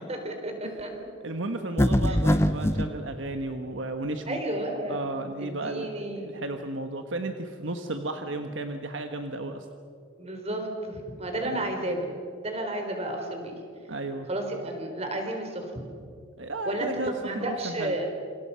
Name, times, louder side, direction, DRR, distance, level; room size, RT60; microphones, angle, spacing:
voice 1, 0.1-0.9 2.1-2.2 4.3-6.4 8.3-8.4 10.2-12.1 12.4-13.6 14.3-15.7 16.7-18.1, right 1 dB, 30° right, 4 dB, 3.8 m, -32 dB
voice 2, 1.2-4.4 4.9-9.7 11.4-11.6 13.9-14.3 16.4-18.0, right 2 dB, 65° right, 6 dB, 1.3 m, -34 dB
sound 1, 1.8-2.9, equal, 15° left, 0.8 m, -22 dB
28.0 x 26.5 x 5.8 m, 2.4 s
head